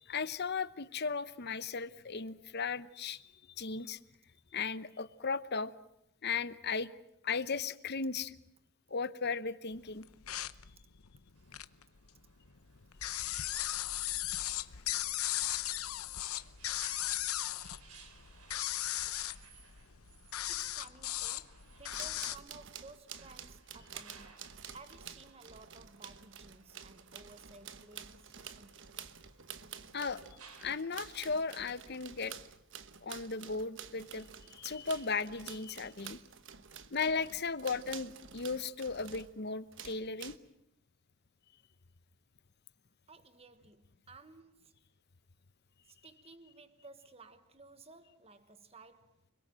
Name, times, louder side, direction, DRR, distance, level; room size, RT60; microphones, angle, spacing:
voice 1, 0.0-4.0 4.5-5.7 6.2-6.9 7.2-8.3 8.9-10.1 19.1-19.2 29.9-32.3 33.0-36.2 36.9-40.4, left 5 dB, 50° left, 0.9 m, -36 dB
sound 1, 10.0-11.8 12.2-22.4, left 13 dB, 80° left, 0.9 m, -37 dB
sound 2, 11.4-31.3, right 5 dB, 85° right, 3.9 m, -62 dB
voice 2, 20.5-28.9 43.1-44.8 45.9-49.2, right 3 dB, 25° right, 1.3 m, -56 dB
sound 3, 21.9-39.3 39.7-40.4, right 8 dB, 55° right, 1.2 m, -50 dB
30.0 x 22.0 x 7.6 m
head